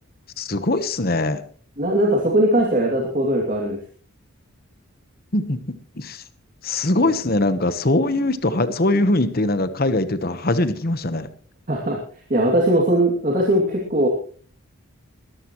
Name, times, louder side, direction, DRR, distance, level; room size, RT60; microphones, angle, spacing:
voice 1, 0.4-1.4 5.3-5.6 6.0-6.2 6.6-11.3, left 2 dB, 45° left, 12 dB, 1.1 m, -21 dB
voice 2, 1.8-3.8 7.0-7.1 11.7-12.0 12.3-14.1, right 1 dB, 35° right, -1 dB, 2.6 m, -20 dB
21.5 x 13.5 x 3.1 m, 0.43 s
head